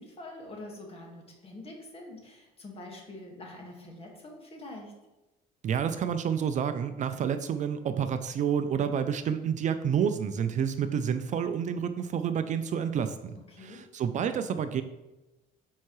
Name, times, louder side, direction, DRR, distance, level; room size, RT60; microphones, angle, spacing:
voice 1, 0.0-4.9 13.5-13.8, left 1 dB, 35° left, 0 dB, 1.7 m, -45 dB
voice 2, 5.6-14.8, right 8 dB, 45° right, 10 dB, 0.4 m, -29 dB
7.2 x 4.7 x 3.1 m, 1.0 s
cardioid pair, 110°, 17 cm